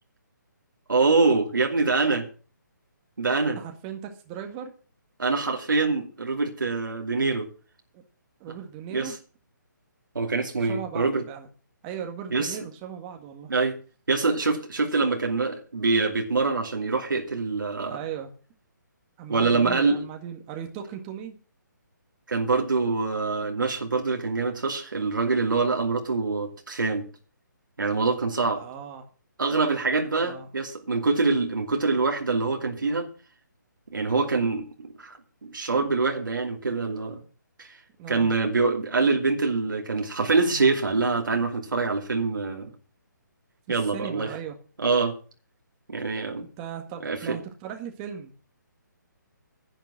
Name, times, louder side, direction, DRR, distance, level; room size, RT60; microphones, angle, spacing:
voice 1, 0.9-2.3 3.2-3.6 5.2-7.5 8.9-9.1 10.1-11.2 12.3-12.6 13.5-13.8 14.1-18.0 19.3-20.0 22.3-27.0 27.8-28.6 29.4-33.1 33.9-37.2 37.6-37.8 38.1-42.7 43.7-44.3 44.8-45.2 45.9-46.4 47.0-47.4, right 3 dB, 80° right, 2 dB, 2.6 m, -25 dB
voice 2, 3.5-4.7 7.9-8.0 8.4-9.2 10.6-11.5 11.8-13.5 17.9-18.3 19.2-21.4 28.5-29.1 30.0-30.5 38.0-38.3 43.7-44.5 46.6-48.4, right 8 dB, 20° right, 4 dB, 1.7 m, -37 dB
10.5 x 9.0 x 7.3 m, 0.38 s
hypercardioid pair, 150°, 11 cm